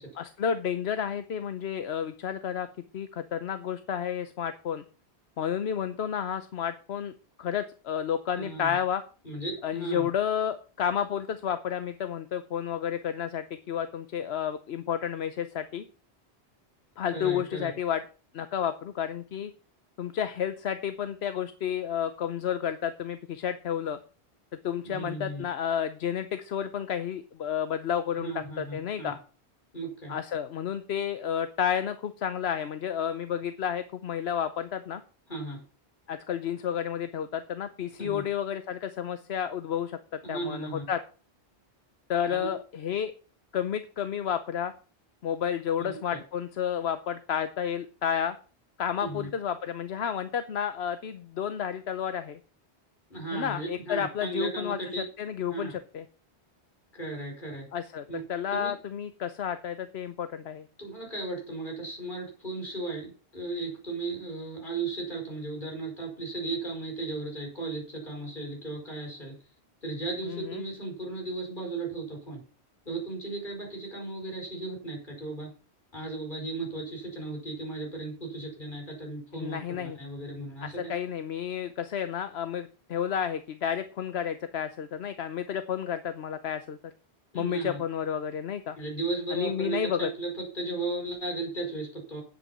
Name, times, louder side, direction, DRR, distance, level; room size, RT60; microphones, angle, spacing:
voice 1, 0.1-2.7 2.9-4.8 5.4-7.1 7.4-9.0 9.6-15.8 17.0-18.0 18.3-19.5 20.0-24.0 24.6-29.2 30.1-35.0 36.1-41.0 42.1-43.1 43.5-44.7 45.2-48.4 48.8-52.4 53.3-56.1 57.7-60.7 70.2-70.6 79.3-80.0 80.6-86.9 87.3-88.8 89.3-90.1, left 8 dB, 70° left, 11 dB, 1.0 m, -31 dB
voice 2, 8.3-8.7 9.2-10.1 17.1-17.7 24.9-25.4 28.2-29.1 29.7-30.2 35.3-35.6 38.0-38.2 40.2-40.8 42.3-42.5 45.8-45.9 49.0-49.3 53.1-55.0 55.5-55.7 56.9-57.7 58.1-58.2 58.5-58.7 60.8-69.4 69.8-72.4 72.9-75.5 75.9-80.8 87.3-87.8 88.8-92.2, right 3 dB, 50° left, 0 dB, 5.6 m, -35 dB
9.1 x 8.2 x 7.2 m, 0.38 s
omnidirectional pair, 1.1 m